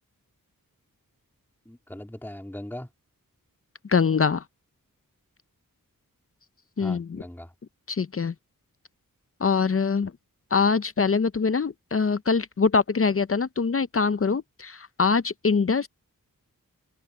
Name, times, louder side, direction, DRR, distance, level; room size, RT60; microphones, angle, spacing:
voice 1, 1.7-2.9 6.8-7.5, left 1 dB, 5° left, 2.4 m, -39 dB
voice 2, 3.9-4.4 6.8-7.2 7.9-8.3 9.4-10.1 10.5-15.9, left 5 dB, 40° left, 0.6 m, -23 dB
open air
wide cardioid pair, 75°, 34 cm